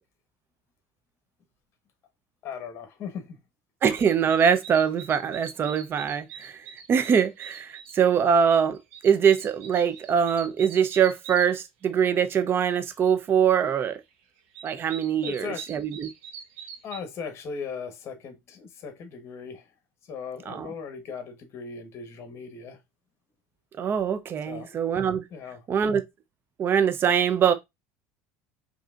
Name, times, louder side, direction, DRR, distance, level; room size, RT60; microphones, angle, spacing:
voice 1, 2.4-3.4 15.2-15.6 16.8-19.7 20.0-22.8 24.5-24.8 25.3-25.7, left 6 dB, 50° left, 1.1 m, -38 dB
voice 2, 3.8-8.8 9.0-14.0 14.6-16.1 20.5-20.7 23.8-25.2 25.7-26.0 26.6-27.5, right 7 dB, 40° right, 0.7 m, -23 dB
sound 1, 3.9-8.0 8.4-11.5 13.9-14.0 14.4-17.0, right 7 dB, 80° right, 1.1 m, -43 dB
4.8 x 2.8 x 2.4 m
supercardioid pair, 105°, 6 cm